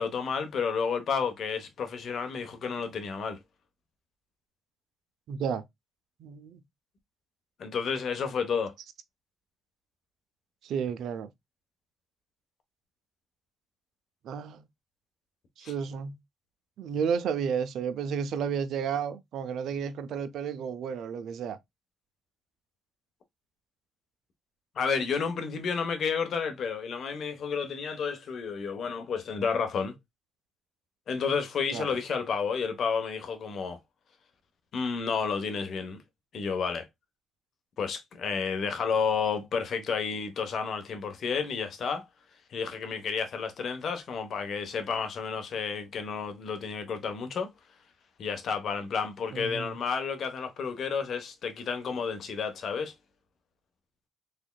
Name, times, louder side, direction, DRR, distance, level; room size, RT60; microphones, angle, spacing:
voice 1, 0.0-3.4 7.6-8.7 15.6-15.7 24.7-29.9 31.1-33.8 34.7-36.0 36.3-36.9 37.8-42.0 42.5-47.5 48.2-52.9, left 6 dB, 60° left, 1.0 m, -31 dB
voice 2, 5.3-5.6 6.2-6.6 10.6-11.3 14.2-14.6 15.6-16.2 16.8-21.6 31.7-32.0 49.3-49.8, right 7 dB, 75° right, 0.4 m, -32 dB
3.5 x 3.4 x 2.2 m
cardioid pair, 90°, 0 cm